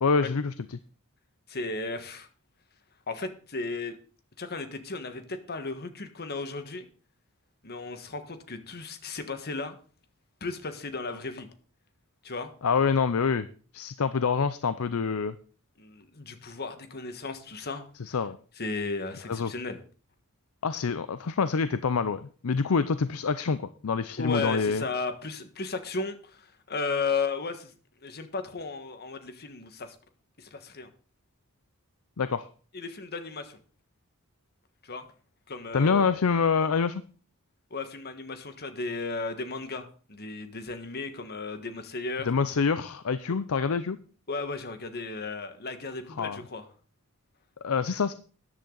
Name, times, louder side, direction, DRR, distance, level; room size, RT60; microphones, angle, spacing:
voice 1, 0.0-0.8 12.6-13.5 13.7-15.4 18.0-18.4 19.3-19.5 20.6-24.8 32.2-32.5 35.7-37.0 42.3-44.0 46.2-46.4 47.6-48.1, left 5 dB, 70° left, 13 dB, 0.6 m, -26 dB
voice 2, 1.5-2.3 3.1-4.0 4.4-6.9 7.6-9.7 10.4-11.5 12.2-12.5 15.8-18.2 18.6-19.8 24.2-27.7 28.0-29.9 30.4-30.9 32.7-33.6 34.8-35.1 35.5-36.0 37.7-42.3 44.3-46.6, left 4 dB, 50° left, 8 dB, 1.5 m, -35 dB
13.5 x 10.5 x 3.9 m, 0.39 s
head